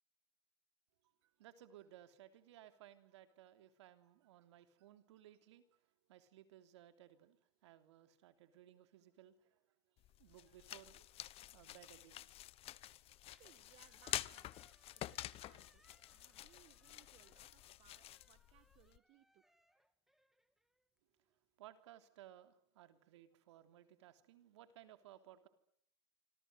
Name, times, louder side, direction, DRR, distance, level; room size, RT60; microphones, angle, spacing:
voice 1, 1.2-5.8 6.1-9.6 10.2-11.1 11.5-12.3 21.6-25.5, right 12 dB, 80° right, 9 dB, 3.2 m, -61 dB
sound 1, 10.0-19.0, left 14 dB, 40° left, 1.0 m, -49 dB
Squeak, 13.1-21.3, equal, ahead, 2.8 m, -75 dB
voice 2, 13.4-19.4, right 14 dB, 50° right, 12 dB, 1.9 m, -69 dB
27.5 x 26.0 x 8.0 m, 0.71 s
supercardioid pair, 115°, 15 cm